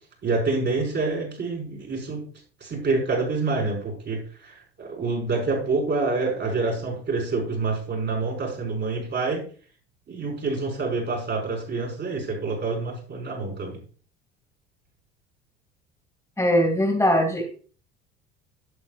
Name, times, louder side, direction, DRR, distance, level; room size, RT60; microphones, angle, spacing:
voice 1, 0.2-2.2 2.6-9.4 10.1-13.8, right 3 dB, 35° right, 0 dB, 5.9 m, -27 dB
voice 2, 16.4-17.4, equal, 10° left, 1 dB, 2.8 m, -20 dB
12.0 x 11.0 x 2.6 m, 0.41 s
figure-of-eight pair, 60°, 32 cm